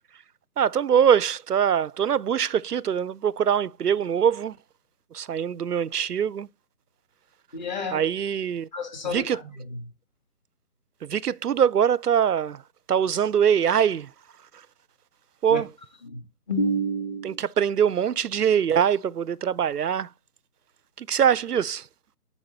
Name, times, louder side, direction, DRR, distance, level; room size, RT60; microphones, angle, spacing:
voice 1, 0.6-4.6 5.1-6.5 7.9-8.7 9.1-9.4 11.0-12.6 12.9-14.1 15.4-15.7 17.2-20.1 21.0-21.9, right 8 dB, 85° right, 0.6 m, -23 dB
voice 2, 7.5-8.0 8.7-9.5 15.5-15.6 16.1-16.2 16.5-17.4, equal, 30° left, 2.5 m, -29 dB
9.8 x 4.8 x 4.4 m
figure-of-eight pair, 155°, 46 cm